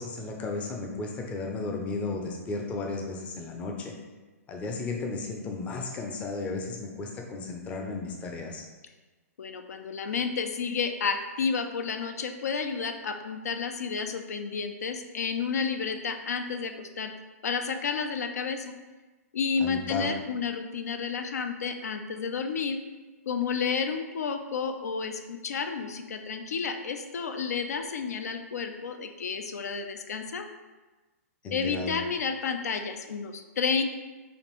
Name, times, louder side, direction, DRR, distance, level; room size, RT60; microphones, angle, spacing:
voice 1, 0.0-4.0 4.5-8.7 19.6-20.1 31.4-31.9, left 3 dB, 15° left, 1 dB, 0.4 m, -34 dB
voice 2, 9.4-17.1 17.4-18.7 19.3-22.8 23.3-30.5 31.5-33.8, left 5 dB, 85° left, 7 dB, 0.4 m, -31 dB
5.0 x 2.5 x 3.0 m, 1.2 s
hypercardioid pair, 150°, 8 cm